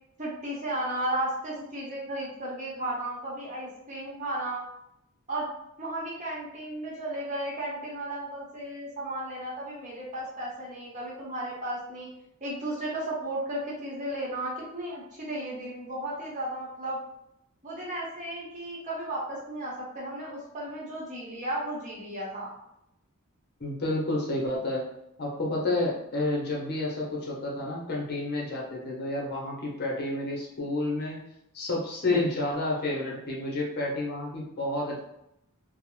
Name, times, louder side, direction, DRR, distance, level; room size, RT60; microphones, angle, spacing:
voice 1, 0.2-4.6 5.3-5.5 5.8-12.1 12.4-17.0 17.6-22.5, right 1 dB, 35° right, -5 dB, 0.9 m, -34 dB
voice 2, 23.6-24.9 25.2-31.2 31.5-35.0, left 2 dB, 45° left, -3 dB, 0.7 m, -30 dB
2.5 x 2.0 x 3.0 m, 0.81 s
head